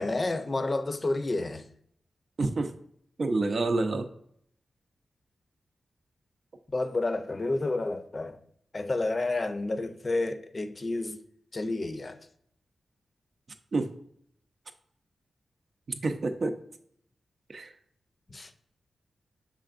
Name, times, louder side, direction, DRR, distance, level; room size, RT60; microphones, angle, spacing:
voice 1, 0.0-1.7 6.7-8.4 8.7-11.2 11.5-12.2 18.3-18.5, left 2 dB, 45° left, 0.5 m, -30 dB
voice 2, 2.4-2.7 3.2-4.1 13.7-13.9 15.9-16.5 17.5-17.7, right 3 dB, 60° right, 0.5 m, -28 dB
5.7 x 3.6 x 2.5 m
cardioid pair, 45°, 0 cm